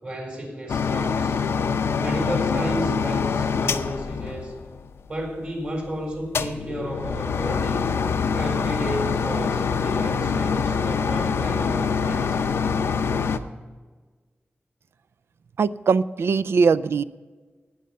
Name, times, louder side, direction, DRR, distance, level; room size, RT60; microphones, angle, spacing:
voice 1, 0.0-1.4 2.0-4.5 5.1-7.9 8.3-12.6, right 1 dB, 40° right, 1 dB, 3.7 m, -32 dB
sound 1, 0.7-5.0 6.3-13.4, left 5 dB, 85° left, 0.6 m, -25 dB
voice 2, 15.6-17.0, right 5 dB, 75° right, 16 dB, 0.4 m, -21 dB
18.5 x 6.5 x 5.5 m, 1.4 s
wide cardioid pair, 130°, 4 cm